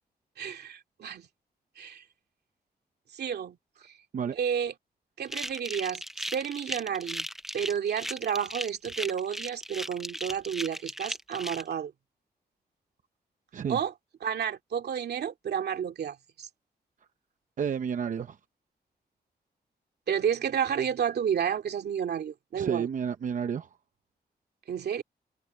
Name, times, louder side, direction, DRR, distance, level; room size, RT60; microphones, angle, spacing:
voice 1, 0.4-1.3 1.8-2.0 3.1-3.6 4.3-4.7 5.2-7.3 7.5-11.9 13.7-13.9 14.2-16.5 20.1-22.9 24.7-25.0, right 8 dB, 80° right, 2.3 m, -31 dB
sound 1, 5.3-11.6, equal, ahead, 0.6 m, -37 dB
voice 2, 17.6-18.4 22.6-23.7, right 7 dB, 50° right, 0.7 m, -30 dB
wide cardioid pair, 155°, 17 cm